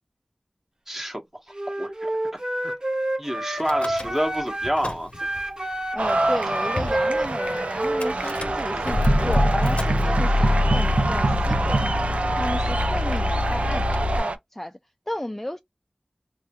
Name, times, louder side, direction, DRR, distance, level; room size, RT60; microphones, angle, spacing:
voice 1, 0.9-1.4 1.8-2.1 2.6-2.7 3.2-5.1, equal, 15° right, 1.0 m, -28 dB
Wind instrument woodwind instrument, 1.5-4.8 5.1-8.5, right 1 dB, 45° right, 0.9 m, -27 dB
Car / Engine starting / Idling, 3.6-4.4 4.6-5.4 6.1-6.2 6.4-6.5 6.8-7.0 8.0-14.2, left 2 dB, 70° left, 0.7 m, -25 dB
voice 2, 5.9-11.9 12.4-14.8 15.1-15.6, left 1 dB, 10° left, 0.3 m, -33 dB
sound 1, 6.0-14.4, right 3 dB, 85° right, 0.5 m, -26 dB
3.4 x 2.3 x 2.8 m
wide cardioid pair, 45°, 2 cm